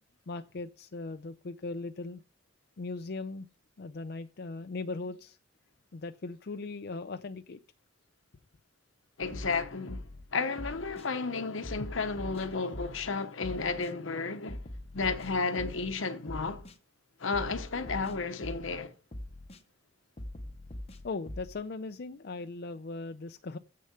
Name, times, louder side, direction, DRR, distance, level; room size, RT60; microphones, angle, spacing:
voice 1, 0.3-2.2 2.8-3.5 3.8-5.4 5.9-7.6 21.0-23.6, left 3 dB, 55° left, 0.5 m, -39 dB
voice 2, 9.2-14.7 14.9-16.6 17.2-18.9, left 4 dB, 85° left, 1.0 m, -33 dB
sound 1, 9.2-10.2 10.6-11.1 11.6-13.1 13.4-13.9 14.5-15.9 16.3-16.8 17.3-18.8 19.1-19.6 20.2-21.5, left 1 dB, 30° left, 0.8 m, -42 dB
7.7 x 6.6 x 7.8 m
head